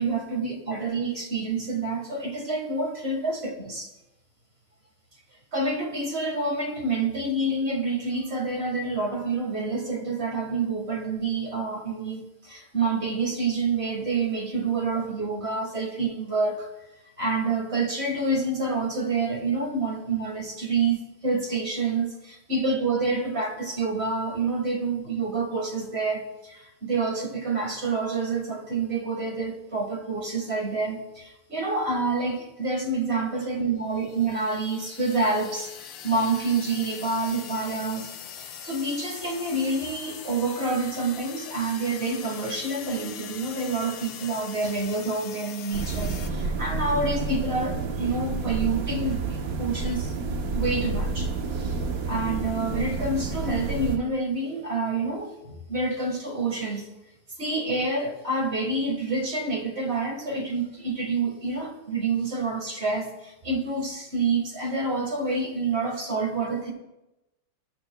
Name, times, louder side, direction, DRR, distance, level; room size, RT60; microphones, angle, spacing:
voice 1, 0.0-3.9 5.5-16.7 17.2-35.7 36.0-38.1 38.4-50.1 50.5-51.8 52.1-56.9 57.4-66.7, right 3 dB, 30° right, 2 dB, 1.6 m, -28 dB
sound 1, 33.9-46.3, left 8 dB, 65° left, 1.4 m, -42 dB
sound 2, 45.7-54.0, right 3 dB, 55° right, 1.0 m, -29 dB
20.0 x 11.5 x 2.3 m, 0.96 s
omnidirectional pair, 2.4 m